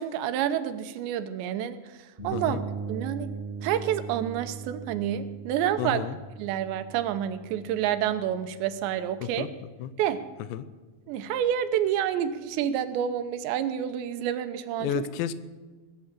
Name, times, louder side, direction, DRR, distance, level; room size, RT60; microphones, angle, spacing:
voice 1, 0.0-1.8 2.2-2.6 2.9-3.3 3.6-6.0 6.4-9.5 10.0-10.2 11.1-15.0, right 10 dB, 85° right, 11 dB, 3.0 m, -28 dB
sound 1, 2.2-9.9, right 5 dB, 10° right, 3.5 m, -40 dB
voice 2, 2.3-2.6 5.8-6.2 9.2-9.5 9.8-9.9 10.5-10.7 14.8-15.3, left 9 dB, 85° left, 14 dB, 3.0 m, -31 dB
20.0 x 8.7 x 7.4 m, 1.3 s
omnidirectional pair, 5.2 m